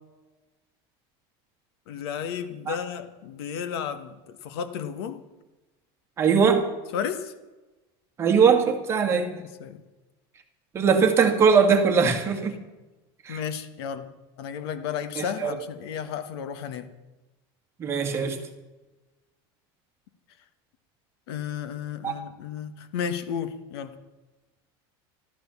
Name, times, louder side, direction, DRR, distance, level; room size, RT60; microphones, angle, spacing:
voice 1, 1.9-5.2 6.9-7.3 9.4-9.8 13.3-14.1 14.4-16.9 21.3-23.9, left 8 dB, 80° left, 11 dB, 1.4 m, -33 dB
voice 2, 6.2-6.7 8.2-9.4 10.7-12.6 13.3-13.4 15.2-15.5 17.8-18.4 22.0-22.2, right 6 dB, 20° right, 4 dB, 1.9 m, -21 dB
14.0 x 13.0 x 7.1 m, 1.1 s
cardioid pair, 170°, 13 cm